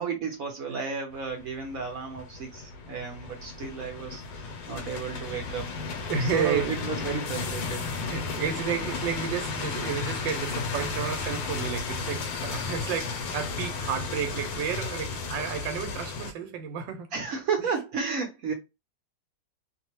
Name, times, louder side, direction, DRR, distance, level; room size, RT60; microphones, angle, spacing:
voice 1, 0.0-5.7 6.2-7.8 17.1-18.5, right 6 dB, 60° right, 1.0 m, -33 dB
sound 1, 1.1-16.3, left 4 dB, 75° left, 1.2 m, -34 dB
voice 2, 6.1-6.7 7.1-7.2 7.9-17.1, right 7 dB, 85° right, 1.3 m, -31 dB
3.0 x 2.1 x 2.9 m
omnidirectional pair, 2.0 m